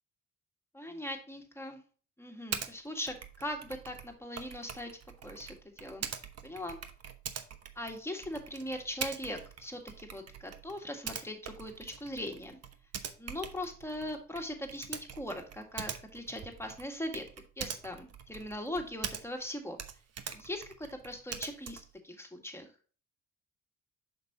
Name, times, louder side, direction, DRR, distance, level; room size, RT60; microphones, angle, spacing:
voice 1, 0.7-1.8 2.2-4.9 5.2-6.1 6.4-6.8 7.8-12.6 13.2-17.3 17.6-19.8 20.3-22.7, left 1 dB, 10° left, 3 dB, 1.8 m, -40 dB
Typing, 2.5-2.7 3.1-19.5 19.7-22.0, right 7 dB, 55° right, 1.0 m, -43 dB
7.3 x 6.1 x 2.8 m, 0.39 s
cardioid pair, 90°, 30 cm